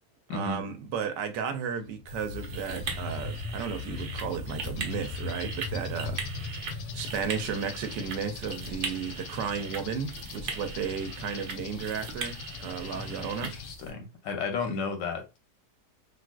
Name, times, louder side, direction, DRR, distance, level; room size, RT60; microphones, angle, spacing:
voice 1, 0.3-6.2 6.9-13.5, right 6 dB, 80° right, 1.2 m, -34 dB
sound 1, 1.9-13.7, left 4 dB, 75° left, 1.1 m, -40 dB
sound 2, 2.1-13.9, right 4 dB, 60° right, 0.8 m, -40 dB
voice 2, 12.9-13.2 13.5-15.4, left 4 dB, 90° left, 1.4 m, -33 dB
3.5 x 2.5 x 2.2 m
omnidirectional pair, 1.9 m